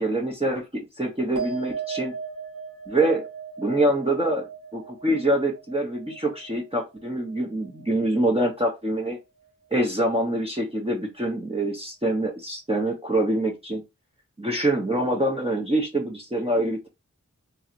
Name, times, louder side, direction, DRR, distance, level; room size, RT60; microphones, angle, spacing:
voice 1, 0.0-2.1 2.9-3.2 3.6-4.5 4.7-9.2 9.7-13.8 14.4-16.9, right 1 dB, 20° right, -1 dB, 0.8 m, -25 dB
sound 1, 1.4-8.0 8.3-9.0, right 6 dB, 80° right, 1.7 m, -38 dB
3.0 x 2.9 x 2.5 m, 0.23 s
wide cardioid pair, 40°, 31 cm